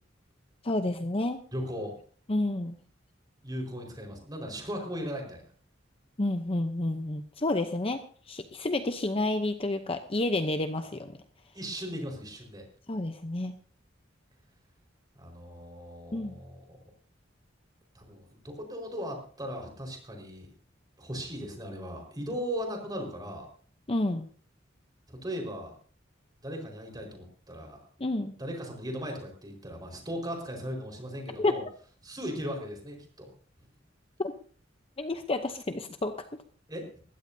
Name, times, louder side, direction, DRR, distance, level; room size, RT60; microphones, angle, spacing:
voice 1, 0.6-1.4 2.3-2.8 6.2-11.1 12.9-13.5 16.1-16.4 23.9-24.3 28.0-28.3 31.4-31.6 34.2-34.3 35.0-36.2, left 2 dB, 30° left, 8 dB, 0.8 m, -30 dB
voice 2, 1.5-1.9 3.4-5.4 11.5-12.6 15.1-16.8 17.9-20.5 21.0-23.5 25.1-25.8 26.4-27.8 28.4-31.6 32.0-33.3 36.7-36.9, equal, 20° right, 2 dB, 4.8 m, -37 dB
21.0 x 15.5 x 2.8 m, 0.43 s
head